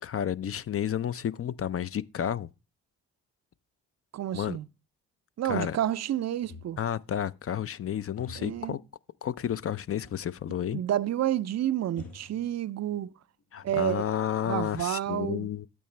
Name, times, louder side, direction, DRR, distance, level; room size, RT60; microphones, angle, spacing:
voice 1, 0.0-2.5 4.3-4.6 5.5-5.8 6.8-8.8 9.2-10.8 13.5-15.7, left 9 dB, 40° left, 0.5 m, -31 dB
voice 2, 4.1-4.7 5.4-6.8 8.4-8.8 10.7-13.1 13.6-14.1 14.5-15.5, right 11 dB, 50° right, 0.5 m, -30 dB
sound 1, 6.4-7.1 8.2-8.7 10.0-10.4 10.7-10.8 11.9-13.0 13.4-14.2, left 3 dB, 75° left, 1.8 m, -49 dB
8.7 x 8.6 x 3.2 m
hypercardioid pair, 45°, 36 cm